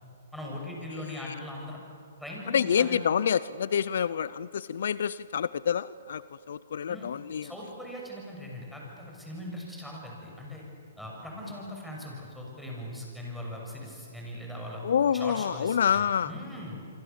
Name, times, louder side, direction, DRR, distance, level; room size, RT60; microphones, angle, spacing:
voice 1, 0.3-1.8 2.2-3.0 6.9-7.0 7.4-10.6 11.0-14.8 15.1-16.8, left 1 dB, ahead, -2 dB, 6.9 m, -40 dB
voice 2, 2.5-6.2 6.5-7.5 11.4-11.5 14.8-16.3, left 8 dB, 70° left, 18 dB, 0.5 m, -27 dB
26.5 x 25.5 x 7.2 m, 2.4 s
hypercardioid pair, 140°, 0 cm